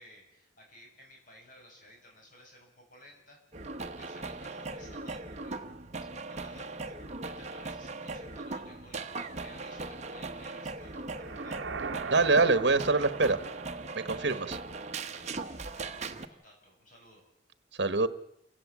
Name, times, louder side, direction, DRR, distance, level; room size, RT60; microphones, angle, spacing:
voice 1, 0.0-5.7 6.2-11.6 13.8-14.6 15.1-17.3, equal, 50° left, 0 dB, 7.9 m, -56 dB
sound 1, 3.5-16.3, right 3 dB, 40° right, 1.1 m, -39 dB
sound 2, 11.1-15.2, right 5 dB, 85° right, 0.8 m, -41 dB
voice 2, 12.1-13.4 13.9-14.6 17.8-18.1, right 3 dB, 70° right, 13 dB, 1.1 m, -24 dB
28.5 x 16.5 x 7.3 m, 0.80 s
head